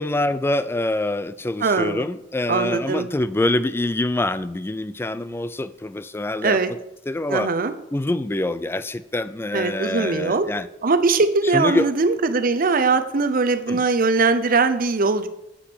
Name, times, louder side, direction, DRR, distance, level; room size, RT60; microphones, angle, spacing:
voice 1, 0.0-6.6 7.1-7.5 7.9-10.7 11.5-11.9 13.7-13.8, left 2 dB, 15° left, 14 dB, 0.4 m, -25 dB
voice 2, 1.6-2.1 2.5-3.1 6.4-6.7 7.3-7.7 9.5-10.5 10.8-15.3, right 4 dB, 50° right, 10 dB, 0.7 m, -21 dB
7.9 x 5.8 x 6.2 m, 0.85 s
head